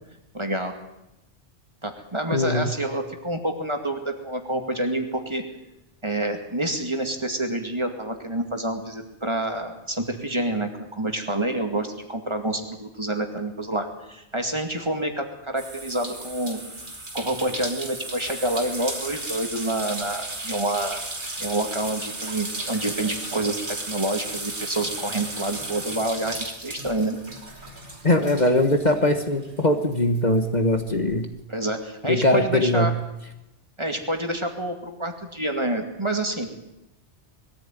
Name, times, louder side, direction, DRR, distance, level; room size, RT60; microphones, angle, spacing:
voice 1, 0.3-0.7 1.8-5.4 6.0-16.6 17.1-21.0 21.4-27.2 31.5-32.9 33.8-36.5, right 1 dB, 25° right, 5 dB, 2.4 m, -28 dB
voice 2, 2.3-2.7 28.0-31.3 32.1-32.9, left 1 dB, 40° left, 6 dB, 1.5 m, -21 dB
sound 1, 15.6-29.6 29.9-31.1, right 2 dB, 45° right, 3.1 m, -35 dB
21.5 x 14.5 x 9.1 m, 0.92 s
omnidirectional pair, 1.2 m